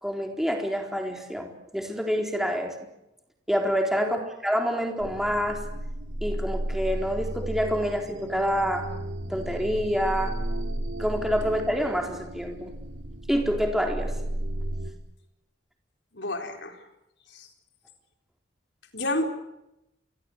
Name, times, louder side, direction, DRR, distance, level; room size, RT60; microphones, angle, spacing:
voice 1, 0.0-2.9 3.5-4.2 4.4-5.6 6.2-8.9 9.3-10.3 11.0-12.7 13.3-14.1, equal, ahead, 3 dB, 4.0 m, -27 dB
sound 1, 5.0-14.9, right 1 dB, 75° right, 2.9 m, -33 dB
voice 2, 16.1-16.9 17.3-17.5 18.9-19.2, left 1 dB, 70° left, 5 dB, 4.3 m, -30 dB
28.5 x 22.5 x 8.0 m, 0.89 s
head